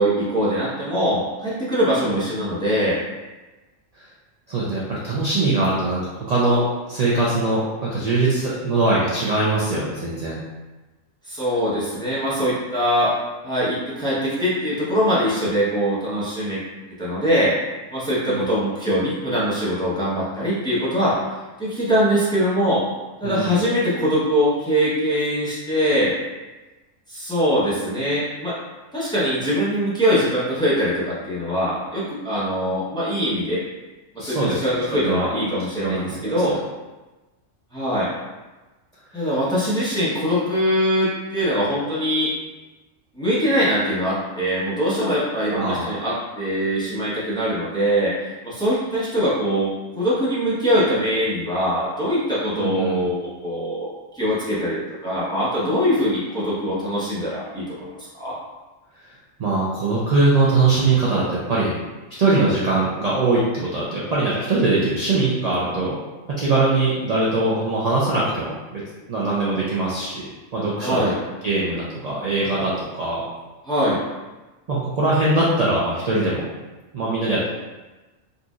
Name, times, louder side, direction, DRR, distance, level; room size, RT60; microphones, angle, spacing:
voice 1, 0.0-3.0 11.3-13.1 13.4-16.6 17.0-17.5 17.9-21.2 21.6-22.8 23.2-26.1 27.1-28.6 28.9-33.6 34.1-36.6 37.7-38.1 39.1-42.3 43.1-48.1 48.4-49.7 50.0-53.9 54.1-58.4 70.8-71.2 73.6-74.0, equal, 5° left, -9 dB, 0.7 m, -22 dB
voice 2, 4.5-6.0 6.3-10.4 18.3-18.5 23.2-23.6 34.2-34.6 35.0-35.3 35.8-36.6 39.2-39.3 45.5-46.0 52.6-53.1 59.4-61.7 62.2-66.0 66.4-68.8 69.1-70.2 70.5-71.0 71.4-72.7 73.0-73.2 74.7-76.5 76.9-77.5, right 2 dB, 60° right, -6 dB, 0.4 m, -21 dB
4.2 x 2.6 x 2.3 m, 1.2 s
omnidirectional pair, 1.4 m